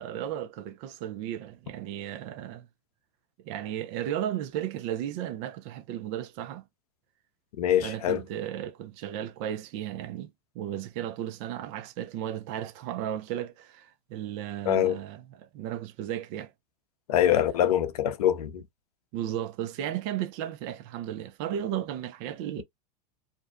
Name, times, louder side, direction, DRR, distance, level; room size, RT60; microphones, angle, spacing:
voice 1, 0.0-2.7 3.4-6.6 7.8-10.3 10.6-15.2 15.5-16.5 19.1-22.6, right 11 dB, 55° right, 0.5 m, -34 dB
voice 2, 7.6-8.2 14.7-15.0 17.1-18.6, left 10 dB, 75° left, 0.6 m, -24 dB
2.5 x 2.2 x 2.2 m
hypercardioid pair, 100°, 20 cm